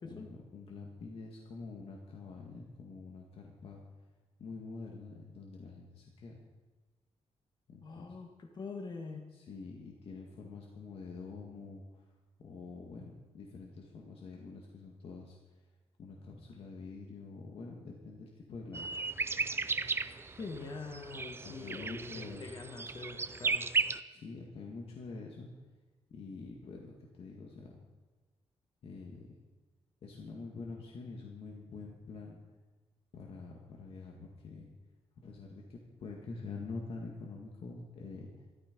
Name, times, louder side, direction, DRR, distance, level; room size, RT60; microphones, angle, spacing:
voice 1, 0.0-3.8 4.4-6.4 7.7-8.1 9.3-11.8 12.4-15.4 16.0-18.9 21.4-22.5 24.1-25.5 26.1-27.8 28.8-29.3 30.0-32.4 33.1-34.7 35.2-38.3, left 4 dB, 55° left, -1 dB, 1.9 m, -46 dB
voice 2, 7.8-9.2 20.2-23.7, left 4 dB, 40° left, 3 dB, 1.5 m, -44 dB
sound 1, 18.7-24.0, right 4 dB, 20° right, 0.5 m, -34 dB
14.0 x 13.5 x 5.2 m, 1.3 s
wide cardioid pair, 145°, 11 cm